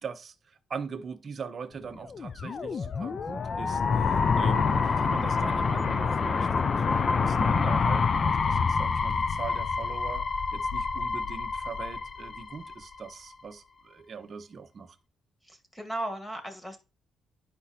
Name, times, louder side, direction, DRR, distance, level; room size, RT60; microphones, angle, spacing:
voice 1, 0.0-6.8 7.2-10.3 10.5-15.0, right 5 dB, 40° right, 0.9 m, -41 dB
sound 1, 2.1-13.0, left 5 dB, 35° left, 0.5 m, -27 dB
voice 2, 15.4-16.8, right 1 dB, 5° left, 1.9 m, -36 dB
10.5 x 5.1 x 4.2 m
cardioid pair, 130°, 0 cm